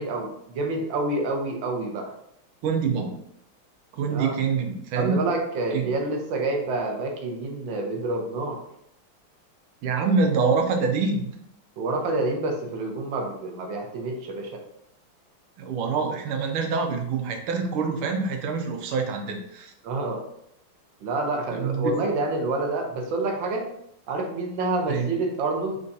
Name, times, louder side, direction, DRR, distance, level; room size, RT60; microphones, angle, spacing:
voice 1, 0.0-2.1 4.1-4.3 4.9-8.6 11.8-14.5 19.8-20.2 21.0-23.7 24.1-25.8, right 2 dB, 70° right, 1 dB, 1.5 m, -28 dB
voice 2, 2.6-3.2 3.9-5.3 5.7-5.9 9.8-11.3 15.6-19.7 21.5-22.1 24.9-25.1, right 5 dB, 90° right, 3 dB, 1.6 m, -25 dB
4.6 x 3.8 x 2.7 m, 0.74 s
omnidirectional pair, 2.3 m